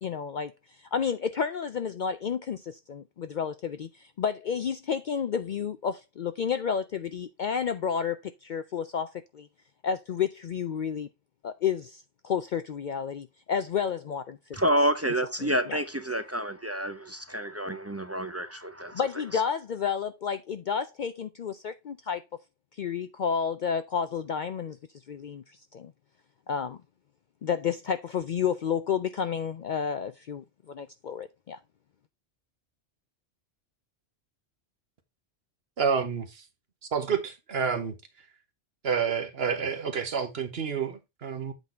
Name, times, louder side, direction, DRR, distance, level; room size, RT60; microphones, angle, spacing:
voice 1, 0.0-9.5 9.8-11.1 11.4-14.4 15.4-15.8 18.9-22.2 22.8-24.8 25.1-25.9 26.5-26.8 27.4-31.6, left 7 dB, 60° left, 0.5 m, -31 dB
voice 2, 14.5-19.0, right 1 dB, 20° right, 0.4 m, -28 dB
voice 3, 35.8-36.4 36.9-37.9 38.8-41.5, right 6 dB, 60° right, 1.4 m, -29 dB
8.1 x 4.0 x 4.4 m
omnidirectional pair, 1.2 m